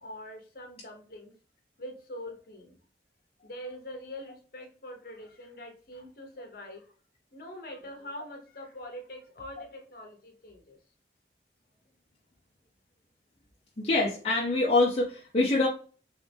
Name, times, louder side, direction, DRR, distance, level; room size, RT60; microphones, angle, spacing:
voice 1, 0.0-1.3 1.8-2.8 3.4-6.9 7.3-10.8, left 1 dB, 55° left, 3 dB, 1.1 m, -44 dB
voice 2, 13.8-15.7, left 2 dB, 35° left, -3 dB, 0.7 m, -25 dB
3.8 x 3.1 x 3.4 m, 0.40 s
head